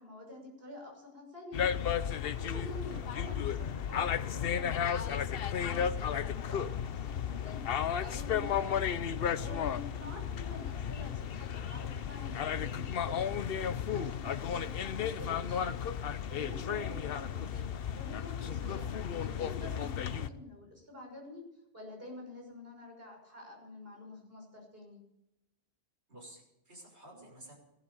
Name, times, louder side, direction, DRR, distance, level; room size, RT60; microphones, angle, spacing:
voice 1, 0.0-1.9 2.3-6.7 7.0-8.8 9.4-15.9 16.3-17.7 17.9-21.4 21.7-25.0, left 2 dB, 65° right, 0 dB, 6.4 m, -48 dB
sound 1, 1.5-20.3, left 8 dB, 65° left, 0.9 m, -34 dB
voice 2, 2.9-3.2 8.9-9.1 10.0-10.3 17.5-17.7 20.1-20.4 26.1-27.6, right 1 dB, 85° right, -1 dB, 6.4 m, -53 dB
17.0 x 11.5 x 7.0 m, 0.85 s
omnidirectional pair, 1.1 m